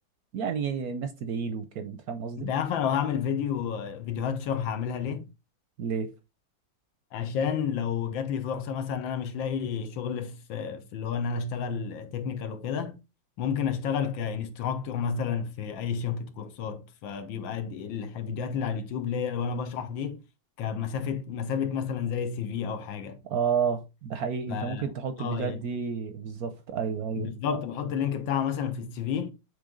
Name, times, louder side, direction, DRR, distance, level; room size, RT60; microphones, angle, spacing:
voice 1, 0.3-2.5 5.8-6.1 23.2-27.3, right 6 dB, 65° right, 1.0 m, -31 dB
voice 2, 2.4-5.3 7.1-13.0 13.4-20.2 20.6-23.2 24.5-25.6 27.2-29.3, left 7 dB, 85° left, 1.6 m, -31 dB
7.9 x 3.2 x 3.7 m
omnidirectional pair, 2.0 m